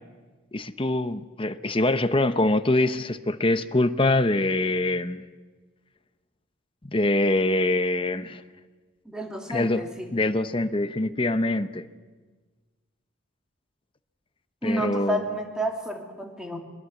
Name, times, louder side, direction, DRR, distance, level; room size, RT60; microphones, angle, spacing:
voice 1, 0.5-5.3 6.9-8.4 9.5-9.8 10.1-11.9 14.6-15.2, left 2 dB, 25° left, 11 dB, 0.8 m, -24 dB
voice 2, 9.1-10.1 14.6-16.6, right 1 dB, 5° right, 2 dB, 2.6 m, -30 dB
23.0 x 21.5 x 8.0 m, 1.4 s
head